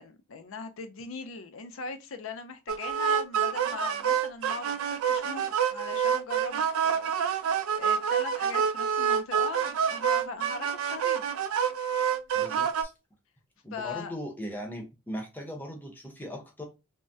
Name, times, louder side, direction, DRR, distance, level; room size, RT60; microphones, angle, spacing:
voice 1, 0.0-11.3 13.7-14.1, left 5 dB, 75° left, 0.5 m, -40 dB
sound 1, 2.7-12.8, right 8 dB, 80° right, 0.3 m, -27 dB
voice 2, 12.3-12.9 13.6-16.6, equal, 10° left, 0.7 m, -39 dB
3.4 x 2.1 x 2.6 m
head